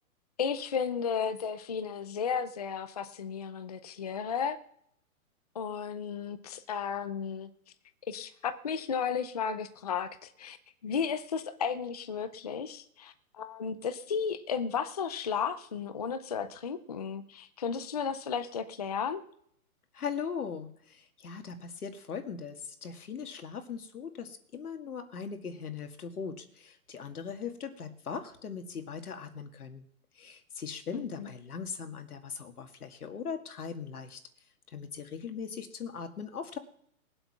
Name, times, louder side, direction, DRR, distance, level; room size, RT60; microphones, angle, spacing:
voice 1, 0.4-4.6 5.5-7.5 8.1-10.6 10.8-19.2 30.9-31.3, left 6 dB, 30° left, 10 dB, 0.5 m, -34 dB
voice 2, 19.9-29.9 30.2-34.2 34.7-36.6, left 6 dB, 85° left, 6 dB, 2.1 m, -39 dB
20.0 x 7.9 x 5.9 m, 0.69 s
hypercardioid pair, 165°, 43 cm